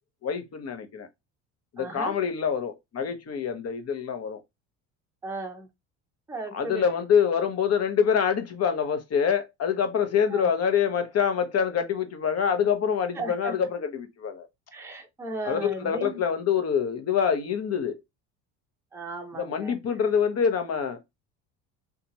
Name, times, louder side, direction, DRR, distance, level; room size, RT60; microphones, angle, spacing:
voice 1, 0.2-1.1 1.7-4.4 6.5-14.5 15.4-18.0 19.4-21.0, left 7 dB, 40° left, 0.9 m, -26 dB
voice 2, 1.8-2.2 5.2-5.7 6.3-7.0 10.3-10.4 13.2-13.5 14.7-16.2 18.9-19.7, right 2 dB, 5° right, 0.7 m, -35 dB
2.7 x 2.4 x 2.7 m
supercardioid pair, 80°, 38 cm